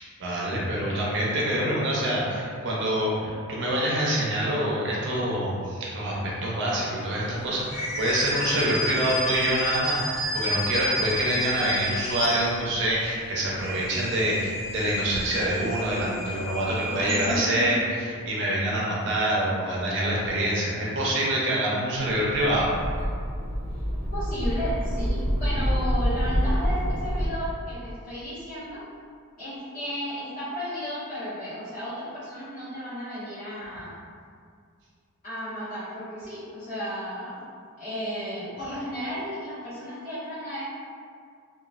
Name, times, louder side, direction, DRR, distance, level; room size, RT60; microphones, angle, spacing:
voice 1, 0.0-22.8, right 1 dB, 55° right, -5 dB, 0.5 m, -26 dB
sound 1, 7.7-12.9 13.4-17.7, left 1 dB, 75° left, 0.9 m, -31 dB
voice 2, 17.1-17.8 24.1-28.8 29.4-34.0 35.2-37.4 37.8-40.6, equal, 35° left, -15 dB, 1.3 m, -34 dB
sound 2, 22.0-27.3, equal, 5° right, 1.1 m, -27 dB
3.0 x 2.3 x 2.4 m, 2.2 s
head